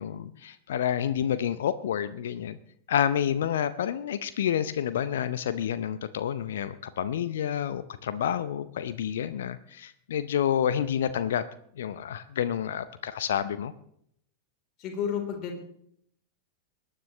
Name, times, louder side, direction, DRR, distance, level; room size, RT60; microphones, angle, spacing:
voice 1, 0.0-2.6 2.9-11.4 11.8-13.7, left 9 dB, 60° left, 13 dB, 0.6 m, -29 dB
voice 2, 14.8-15.6, left 7 dB, 35° left, 2 dB, 3.6 m, -31 dB
23.5 x 10.0 x 3.1 m, 0.69 s
figure-of-eight pair, 90°, 0 cm